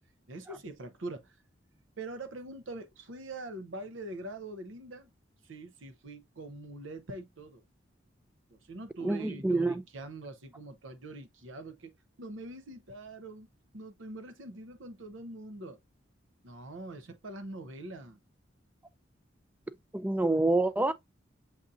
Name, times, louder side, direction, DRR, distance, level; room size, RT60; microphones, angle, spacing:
voice 1, 0.3-1.4 2.0-5.1 5.4-7.6 8.5-13.5 13.7-15.8 16.4-18.2, right 2 dB, 85° right, 0.8 m, -43 dB
voice 2, 9.0-9.8 19.9-20.9, right 2 dB, 10° right, 0.3 m, -27 dB
7.0 x 2.7 x 2.4 m
head